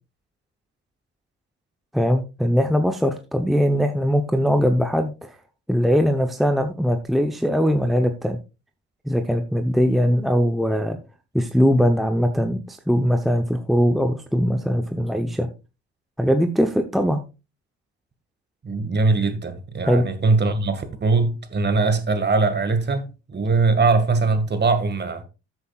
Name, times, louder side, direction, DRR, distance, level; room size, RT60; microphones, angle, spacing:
voice 1, 1.9-5.3 5.7-8.4 9.1-11.0 11.3-15.5 16.2-17.2 19.9-20.1, equal, ahead, 0.9 m, -21 dB
voice 2, 18.6-25.2, right 3 dB, 30° right, 1.9 m, -21 dB
13.5 x 7.9 x 2.4 m
supercardioid pair, 85°, 34 cm